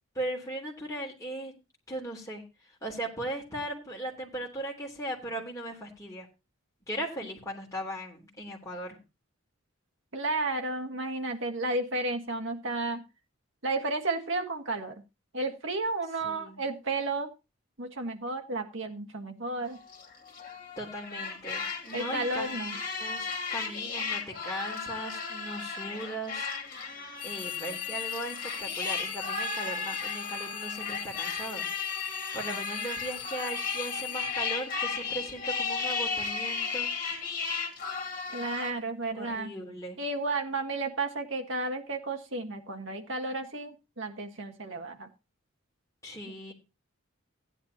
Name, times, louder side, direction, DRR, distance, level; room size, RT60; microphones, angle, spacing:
voice 1, 0.1-1.5 1.9-2.4 2.8-6.3 6.9-9.0 16.2-16.6 20.8-26.5 27.2-31.7 32.3-36.9 39.1-40.0 46.0-46.5, right 1 dB, 15° left, -2 dB, 3.2 m, -38 dB
voice 2, 10.1-13.0 13.6-15.0 15.3-17.3 17.8-19.8 21.9-22.8 38.3-39.5 40.0-45.1, right 2 dB, 60° right, 4 dB, 1.7 m, -32 dB
sound 1, 19.7-38.7, left 5 dB, 40° left, 2.5 m, -35 dB
sound 2, 27.2-35.4, left 11 dB, 90° left, 1.4 m, -39 dB
15.5 x 10.0 x 2.9 m, 0.27 s
head